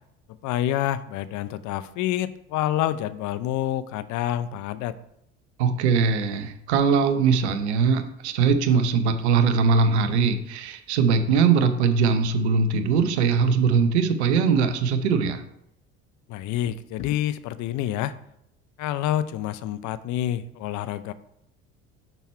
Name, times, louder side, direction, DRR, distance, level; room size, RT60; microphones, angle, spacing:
voice 1, 0.4-5.0 16.3-18.1 18.8-21.1, left 12 dB, 60° left, 13 dB, 0.6 m, -27 dB
voice 2, 5.6-15.4, right 5 dB, 85° right, 9 dB, 0.8 m, -21 dB
6.0 x 5.6 x 4.3 m, 0.75 s
hypercardioid pair, 70°, 33 cm